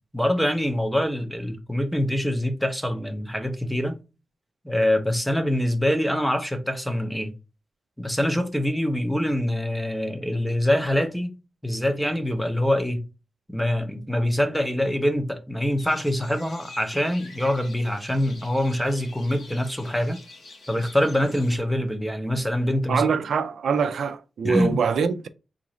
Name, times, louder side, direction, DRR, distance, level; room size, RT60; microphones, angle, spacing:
voice 1, 0.1-4.0 4.6-7.3 8.0-11.3 11.6-13.1 13.5-20.2 20.7-23.1 24.4-24.8, left 1 dB, 5° left, 0.6 m, -24 dB
sound 1, 15.8-21.6, left 3 dB, 75° left, 1.4 m, -46 dB
voice 2, 22.9-25.3, right 6 dB, 80° right, 0.3 m, -24 dB
3.8 x 2.4 x 3.0 m
wide cardioid pair, 165°, 0 cm